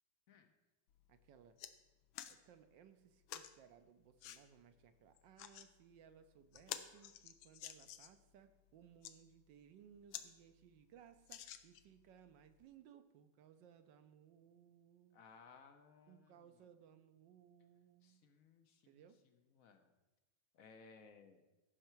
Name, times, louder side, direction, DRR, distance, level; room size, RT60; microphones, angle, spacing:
sound 1, 0.9-1.0 1.3-1.7 2.1-2.4 3.3-3.5 4.2-4.4 5.2-5.7 6.1-6.2 6.5-8.2 8.8-9.1 9.7-9.8 10.1-10.3 10.6-10.7 11.3-12.0 12.6-12.7, left 11 dB, 85° left, 1.4 m, -49 dB
voice 1, 1.1-1.6 2.2-15.2 16.1-18.2 18.9-19.2, right 8 dB, 75° right, 10 dB, 1.3 m, -63 dB
voice 2, 15.1-16.7 18.0-19.9 20.5-21.4, left 5 dB, 60° left, 7 dB, 0.9 m, -63 dB
15.0 x 5.7 x 4.4 m, 1.1 s
omnidirectional pair, 2.1 m